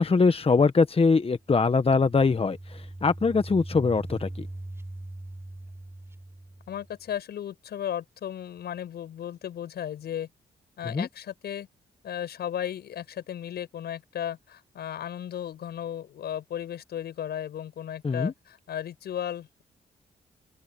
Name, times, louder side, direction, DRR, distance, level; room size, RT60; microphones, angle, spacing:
voice 1, 0.0-4.5 10.8-11.1 18.0-18.3, left 4 dB, 35° left, 1.2 m, -22 dB
sound 1, 1.4-7.1, right 1 dB, 15° right, 5.7 m, -41 dB
voice 2, 6.7-10.3 10.8-11.7 12.0-19.6, left 10 dB, 80° left, 7.0 m, -35 dB
open air
supercardioid pair, 55°, 17 cm